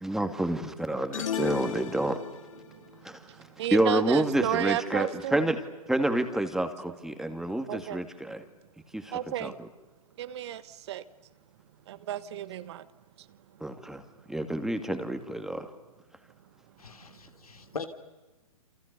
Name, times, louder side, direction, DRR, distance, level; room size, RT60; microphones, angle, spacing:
voice 1, 0.0-2.2 3.0-3.2 3.7-5.6 5.9-8.4 8.9-9.5 13.6-14.0 14.3-15.7, right 1 dB, ahead, 2.4 m, -28 dB
sound 1, 1.1-2.7, left 7 dB, 65° left, 2.1 m, -34 dB
voice 2, 3.2-5.5 7.7-8.0 9.1-9.6 10.2-11.0 11.9-12.8 13.2-13.3, right 12 dB, 50° right, 1.5 m, -33 dB
voice 3, 16.8-17.8, left 5 dB, 80° left, 3.3 m, -40 dB
29.0 x 28.5 x 6.9 m
figure-of-eight pair, 125°, 19 cm